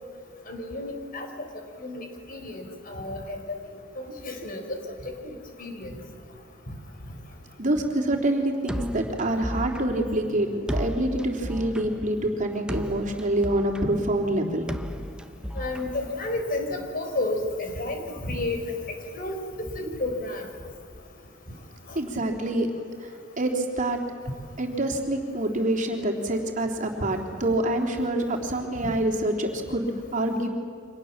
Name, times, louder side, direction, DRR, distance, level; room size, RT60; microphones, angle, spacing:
voice 1, 0.5-1.3 1.8-3.6 4.0-4.8 5.0-5.9 15.6-18.8 19.1-19.4 19.7-20.5, left 2 dB, 50° left, 4 dB, 4.7 m, -31 dB
voice 2, 7.6-14.7 21.9-22.7 23.0-24.0 24.6-30.5, right 1 dB, 40° right, 1 dB, 3.4 m, -26 dB
sound 1, 8.7-16.6, equal, 5° right, 1.1 m, -35 dB
30.0 x 25.5 x 7.4 m, 2.3 s
head